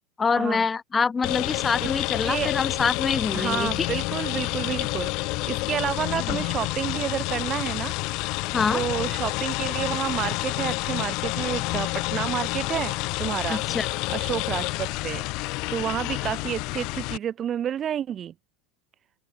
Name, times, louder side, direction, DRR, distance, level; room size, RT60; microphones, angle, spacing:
voice 1, 0.2-3.9 6.3-6.4 8.5-8.8 13.5-13.9, left 5 dB, 15° left, 1.5 m, -25 dB
sound 1, 1.2-17.2, left 25 dB, 55° left, 2.0 m, -29 dB
voice 2, 3.3-5.1 5.5-7.9 8.7-13.6 14.1-15.2 15.7-18.3, right 9 dB, 30° right, 1.2 m, -30 dB
supercardioid pair, 140°, 0 cm